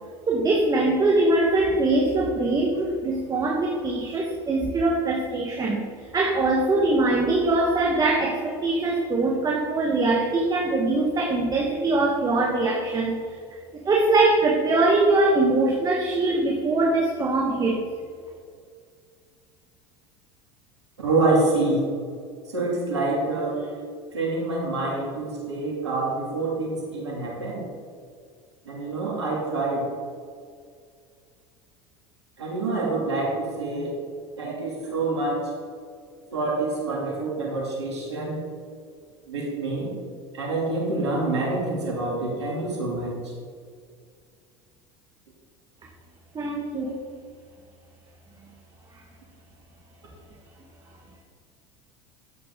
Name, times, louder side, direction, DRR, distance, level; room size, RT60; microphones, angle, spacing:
voice 1, 0.3-5.8 6.1-13.2 13.8-17.8 46.3-47.0, right 2 dB, 25° right, -1 dB, 1.4 m, -22 dB
voice 2, 21.0-21.9 22.5-23.7 24.1-27.7 28.6-29.9 32.4-33.9 34.4-35.4 36.3-38.4 39.3-39.9 40.3-43.3, right 2 dB, 90° right, -3 dB, 2.7 m, -26 dB
11.0 x 7.6 x 3.7 m, 2.1 s
hypercardioid pair, 80°, 14 cm